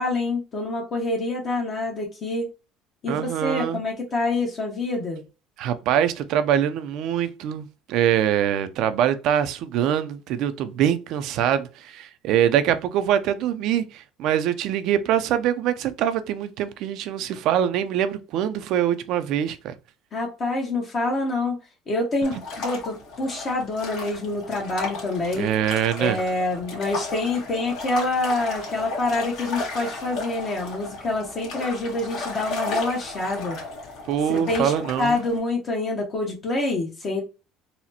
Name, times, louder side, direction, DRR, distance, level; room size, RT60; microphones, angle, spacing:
voice 1, 0.0-2.5 3.0-5.2 20.1-21.6 21.9-25.5 26.0-33.6 34.3-34.7 35.0-37.2, left 2 dB, 40° left, 0.8 m, -26 dB
voice 2, 3.1-3.8 5.6-19.7 25.4-26.2 34.1-35.2, right 10 dB, 65° right, 0.4 m, -24 dB
sound 1, 22.2-35.4, left 3 dB, 65° left, 1.5 m, -35 dB
4.0 x 2.1 x 2.8 m
supercardioid pair, 110°, 0 cm